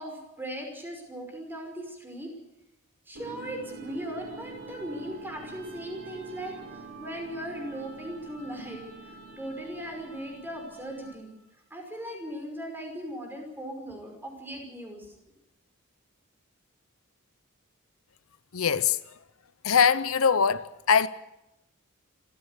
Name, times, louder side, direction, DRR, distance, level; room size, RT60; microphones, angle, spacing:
voice 1, 0.0-2.3 3.1-11.4 11.7-15.2, right 1 dB, 10° right, 5.4 m, -38 dB
sound 1, 3.2-11.3, right 3 dB, 60° right, 6.3 m, -45 dB
voice 2, 18.5-19.2 19.6-21.1, left 6 dB, 70° left, 0.7 m, -23 dB
26.5 x 14.5 x 8.2 m
head